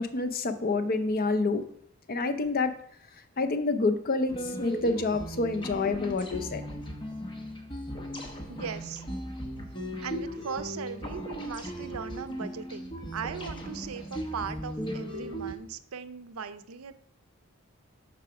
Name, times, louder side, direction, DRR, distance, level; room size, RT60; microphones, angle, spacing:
voice 1, 0.0-1.6 2.1-2.7 3.4-6.6, left 3 dB, 45° left, 9 dB, 0.6 m, -28 dB
sound 1, 4.3-15.5, equal, 25° left, 0.9 m, -37 dB
voice 2, 8.5-9.0 10.0-16.9, right 6 dB, 80° right, 11 dB, 0.5 m, -38 dB
6.7 x 4.8 x 4.8 m, 0.67 s
head